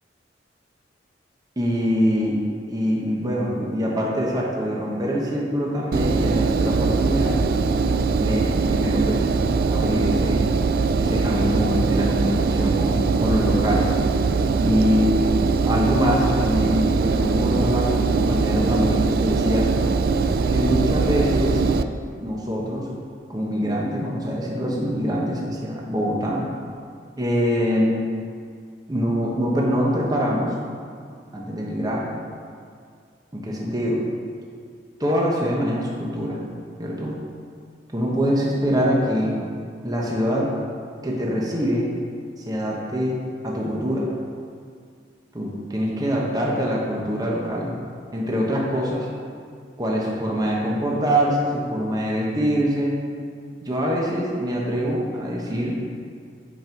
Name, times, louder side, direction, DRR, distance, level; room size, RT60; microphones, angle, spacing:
voice 1, 1.6-2.4 2.7-7.6 8.2-10.5 11.0-13.9 14.6-15.2 15.6-19.7 20.5-21.6 22.1-22.9 23.3-26.4 27.2-28.0 28.9-30.5 31.3-32.1 33.3-34.0 35.0-36.4 36.8-37.1 37.9-39.4 39.8-40.5 41.0-41.9 42.4-43.2 43.4-44.1 45.3-47.7 48.1-49.1 49.8-53.0 53.6-55.8, equal, 20° right, -3 dB, 1.0 m, -24 dB
Engine, 5.9-21.8, right 4 dB, 50° right, 0.3 m, -21 dB
8.5 x 5.4 x 4.6 m, 2.2 s
head